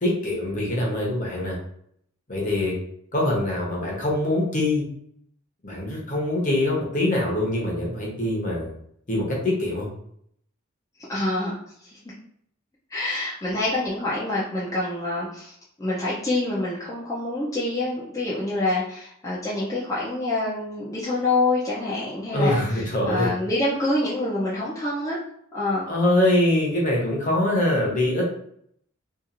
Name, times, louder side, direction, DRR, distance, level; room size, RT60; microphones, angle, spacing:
voice 1, 0.0-1.6 2.3-2.7 3.1-4.8 5.6-8.7 9.1-9.9 22.3-23.3 25.9-28.3, left 1 dB, 40° left, -3 dB, 0.9 m, -23 dB
voice 2, 11.1-12.0 12.9-25.2 25.5-25.9, left 2 dB, 15° left, -8 dB, 0.5 m, -26 dB
2.8 x 2.4 x 2.5 m, 0.68 s
head